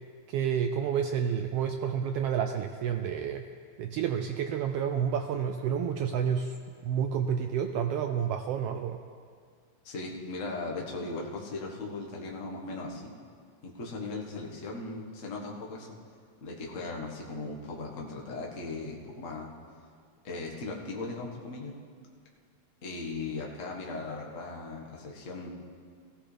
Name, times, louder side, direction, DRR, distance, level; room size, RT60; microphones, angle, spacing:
voice 1, 0.3-3.4 3.8-6.6 6.8-9.0, right 8 dB, 85° right, 5 dB, 1.3 m, -29 dB
voice 2, 9.8-13.1 13.6-15.9 16.4-19.5 20.2-21.7 22.8-25.5, left 3 dB, 35° left, -1 dB, 1.4 m, -38 dB
19.0 x 15.0 x 3.4 m, 2.1 s
omnidirectional pair, 3.3 m